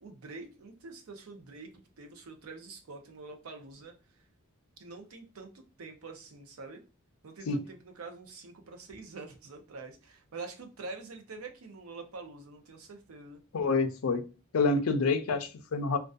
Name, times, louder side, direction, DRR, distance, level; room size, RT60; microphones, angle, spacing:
voice 1, 0.0-3.9 4.8-6.8 7.2-13.4, right 3 dB, 85° right, 0.6 m, -46 dB
voice 2, 13.5-14.3 14.5-16.0, left 3 dB, 85° left, 0.5 m, -27 dB
2.5 x 2.3 x 2.3 m
head